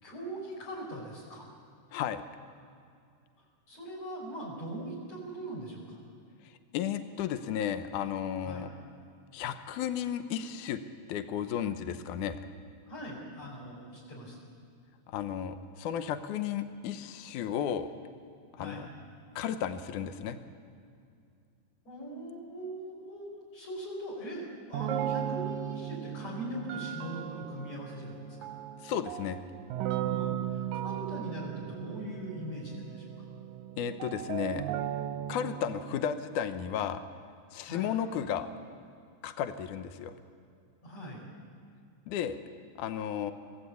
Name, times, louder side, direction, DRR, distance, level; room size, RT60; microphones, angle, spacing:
voice 1, 0.0-1.5 3.7-6.0 8.4-8.7 12.9-14.4 18.6-18.9 21.8-24.4 24.7-28.5 30.0-33.1 37.7-37.9 40.8-41.2, right 1 dB, 50° left, -4 dB, 6.7 m, -41 dB
voice 2, 1.9-2.2 6.7-8.7 9.3-10.8 11.1-12.4 15.1-17.9 18.5-18.9 19.4-20.4 28.8-29.4 33.8-34.7 35.3-37.0 37.5-38.5 39.2-40.1 42.1-42.4 42.8-43.3, left 9 dB, 75° left, 9 dB, 2.3 m, -33 dB
sound 1, 24.7-36.0, right 11 dB, 75° right, 1.8 m, -36 dB
24.5 x 17.5 x 8.4 m, 2.4 s
omnidirectional pair, 3.8 m